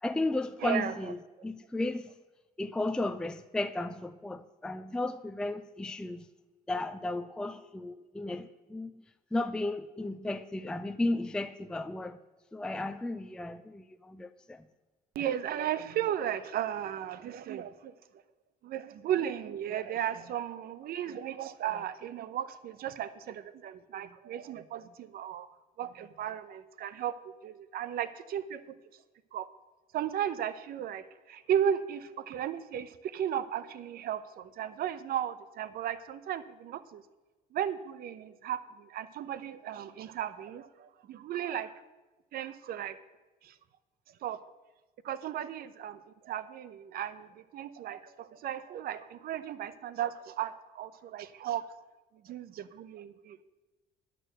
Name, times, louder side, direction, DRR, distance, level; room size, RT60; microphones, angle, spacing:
voice 1, 0.0-2.1 2.6-6.2 6.7-9.0 9.3-12.2 12.5-14.6, left 2 dB, 5° left, 0.4 m, -34 dB
voice 2, 0.6-0.9 15.1-17.9 18.6-25.5 25.8-28.6 29.3-29.5 29.9-37.0 37.5-41.8 42.3-43.0 43.4-43.5 44.2-44.4 45.0-51.6 52.2-53.4, right 10 dB, 65° right, 0.8 m, -35 dB
11.0 x 6.8 x 7.7 m
cardioid pair, 110°, 17 cm